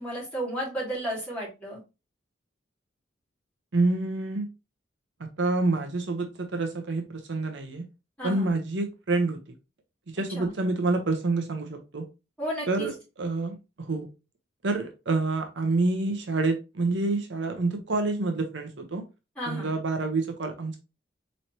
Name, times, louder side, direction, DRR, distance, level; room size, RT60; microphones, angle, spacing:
voice 1, 0.0-1.8 8.2-8.5 10.3-10.5 12.4-12.9 19.4-19.7, equal, 5° left, -6 dB, 2.5 m, -33 dB
voice 2, 3.7-4.5 5.4-7.8 8.2-9.6 10.1-12.0 12.7-14.1 14.6-19.0 19.5-20.8, right 3 dB, 70° right, 5 dB, 0.7 m, -27 dB
4.2 x 3.1 x 2.8 m, 0.28 s
head